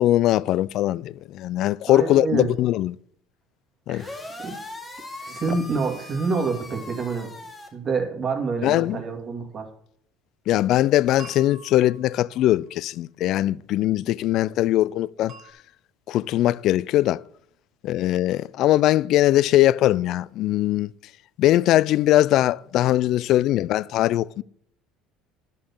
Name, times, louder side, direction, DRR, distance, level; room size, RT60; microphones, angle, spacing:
voice 1, 0.0-3.0 3.9-4.1 8.6-9.0 10.5-15.3 16.1-17.2 17.8-20.9 21.4-24.4, left 14 dB, 60° left, 0.3 m, -21 dB
voice 2, 1.9-2.5 3.9-4.6 5.2-7.3 7.7-9.7, right 4 dB, 35° right, 2.2 m, -27 dB
sound 1, 3.9-7.7, left 2 dB, 15° left, 2.1 m, -39 dB
sound 2, 11.2-12.7 15.3-15.5, right 4 dB, 55° right, 2.0 m, -46 dB
11.5 x 4.4 x 7.1 m
supercardioid pair, 105°, 0 cm